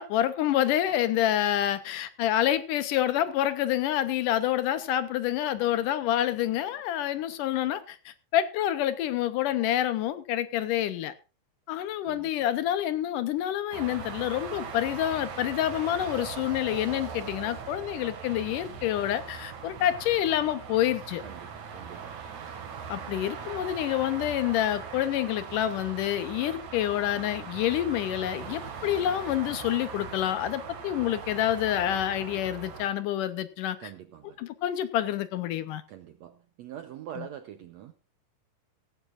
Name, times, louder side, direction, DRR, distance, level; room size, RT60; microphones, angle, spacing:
voice 1, 0.0-11.1 11.7-21.2 22.9-33.9 34.4-35.8 37.2-37.3, left 12 dB, 75° left, 2.3 m, -28 dB
sound 1, 13.7-32.9, right 6 dB, 60° right, 3.2 m, -40 dB
voice 2, 21.2-22.3 33.8-34.4 35.9-37.9, right 10 dB, 75° right, 1.6 m, -44 dB
16.5 x 15.0 x 2.5 m
omnidirectional pair, 4.1 m